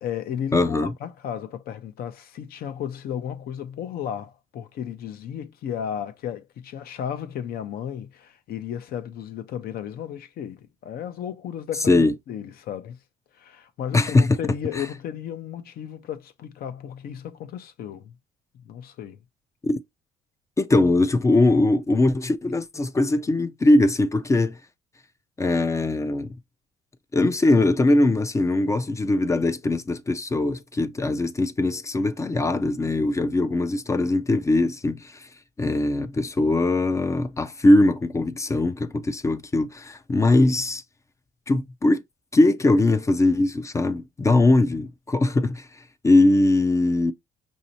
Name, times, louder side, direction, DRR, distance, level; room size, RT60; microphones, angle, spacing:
voice 1, 0.0-13.0 13.3-18.2 18.6-19.2 44.2-44.4, left 9 dB, 60° left, 0.7 m, -34 dB
voice 2, 0.5-0.9 11.9-12.1 13.9-14.4 14.8-14.9 19.6-19.8 20.6-24.6 25.4-26.3 27.1-35.3 35.6-40.8 41.5-42.0 42.3-45.7 46.0-47.1, left 2 dB, 15° left, 0.4 m, -21 dB
5.2 x 2.8 x 2.7 m
cardioid pair, 110°, 17 cm